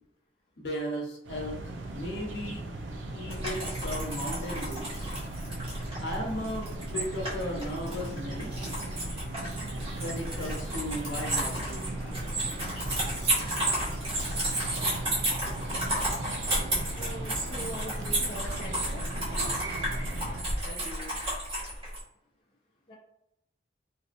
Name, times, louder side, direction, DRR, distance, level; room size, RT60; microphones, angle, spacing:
voice 1, 0.6-2.6 3.1-5.1 6.0-8.5 10.0-11.9 20.6-21.1, equal, 65° left, -1 dB, 0.9 m, -36 dB
sound 1, 1.2-20.4, right 2 dB, 85° right, 0.5 m, -38 dB
sound 2, 3.3-22.0, right 1 dB, 30° right, 1.2 m, -32 dB
voice 2, 17.0-19.8 22.9-23.0, equal, 30° left, -5 dB, 0.6 m, -42 dB
3.3 x 2.6 x 2.5 m, 0.81 s
head